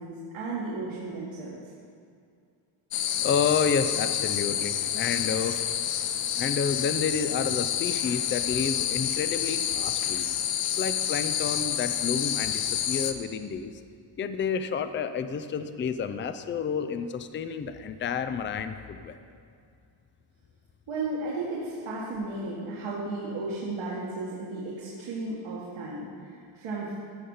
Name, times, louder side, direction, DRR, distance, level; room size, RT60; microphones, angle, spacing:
voice 1, 0.0-1.6 20.9-27.0, right 2 dB, 75° right, -6 dB, 1.8 m, -34 dB
sound 1, 2.9-13.1, left 10 dB, 90° left, 0.8 m, -28 dB
voice 2, 3.2-5.6 6.3-10.3 10.8-13.7 14.2-19.2, left 6 dB, 25° left, 10 dB, 0.4 m, -30 dB
14.5 x 5.0 x 5.5 m, 2.3 s
cardioid pair, 115°, 50 cm